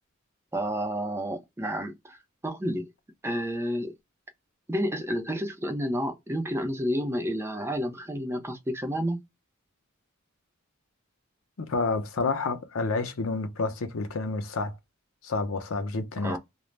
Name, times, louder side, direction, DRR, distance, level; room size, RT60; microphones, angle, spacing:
voice 1, 0.5-2.2 2.4-2.9 3.2-3.9 4.7-9.2 16.2-16.4, equal, 10° right, 0.5 m, -30 dB
voice 2, 11.6-14.8 15.2-16.4, left 3 dB, 85° left, 0.6 m, -29 dB
2.4 x 2.0 x 3.1 m
head